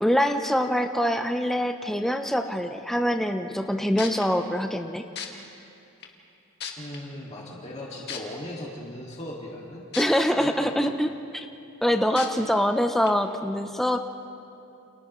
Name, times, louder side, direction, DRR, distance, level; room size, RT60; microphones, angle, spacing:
voice 1, 0.0-5.0 10.0-11.5 11.8-14.0, equal, ahead, 5 dB, 0.6 m, -24 dB
sound 1, 3.6-3.7 4.0-4.2 5.2-5.3 6.0-6.1 6.6-7.0 8.1-8.2 9.9-10.0 10.6-10.7 12.2-12.3 13.0-13.1, left 7 dB, 50° left, 2.0 m, -34 dB
voice 2, 6.8-9.8 10.4-10.7, left 1 dB, 30° left, -3 dB, 2.0 m, -38 dB
29.5 x 28.5 x 3.1 m, 2.7 s
head